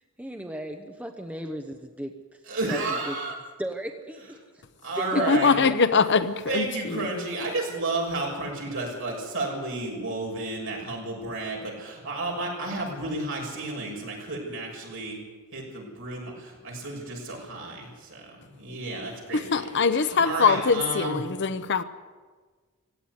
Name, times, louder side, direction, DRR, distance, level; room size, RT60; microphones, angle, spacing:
voice 1, 0.2-2.1 2.7-3.2 3.6-4.3 5.0-5.6, right 1 dB, 5° right, 1.0 m, -35 dB
voice 2, 2.5-3.4 4.8-5.6 6.5-15.2 15.5-19.7 20.0-21.2, right 2 dB, 65° right, 6.6 m, -32 dB
voice 3, 5.3-7.1 19.3-21.8, left 5 dB, 55° left, 0.8 m, -23 dB
17.0 x 15.5 x 9.7 m
head